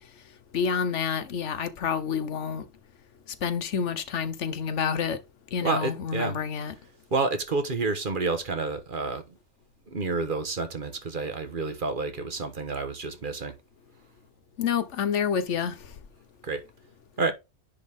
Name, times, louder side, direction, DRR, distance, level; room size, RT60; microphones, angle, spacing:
voice 1, 0.5-2.7 3.4-5.2 5.5-6.7 14.6-15.9, left 7 dB, 85° left, 1.2 m, -28 dB
voice 2, 5.6-6.4 7.1-9.2 9.9-13.5 16.4-16.6 17.2-17.3, right 3 dB, 45° right, 1.3 m, -29 dB
10.0 x 4.1 x 3.5 m
omnidirectional pair, 1.2 m